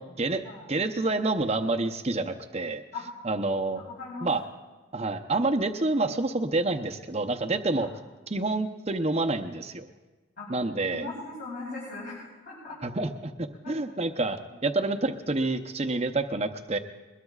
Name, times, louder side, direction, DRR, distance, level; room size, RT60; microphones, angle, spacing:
voice 1, 0.0-0.4 0.7-2.8 3.2-3.8 4.2-4.4 4.9-7.9 8.3-9.9 10.5-11.1 12.8-16.8, right 2 dB, 30° right, 6 dB, 0.7 m, -28 dB
voice 2, 3.7-4.3 7.8-7.9 10.4-10.5 10.9-12.8 13.6-13.7 14.5-14.6, left 3 dB, 45° left, -7 dB, 5.0 m, -39 dB
22.0 x 21.0 x 2.4 m, 1.2 s
head